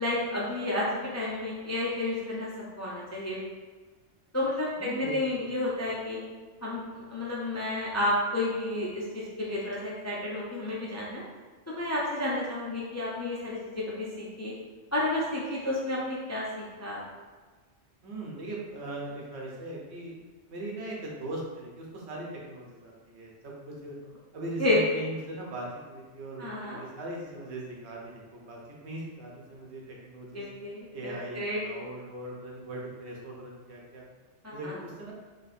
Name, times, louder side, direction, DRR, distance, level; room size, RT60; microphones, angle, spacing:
voice 1, 0.0-3.4 4.3-6.2 6.6-11.2 11.7-14.5 14.9-17.0 24.6-24.8 26.4-26.8 30.3-31.6 34.4-34.7, left 1 dB, 25° left, -5 dB, 0.4 m, -31 dB
voice 2, 4.7-5.5 5.8-5.9 18.0-20.2 20.5-24.0 24.3-30.5 30.9-34.1 34.5-35.1, right 1 dB, 70° right, -3 dB, 1.1 m, -40 dB
3.6 x 2.6 x 4.1 m, 1.4 s
omnidirectional pair, 1.2 m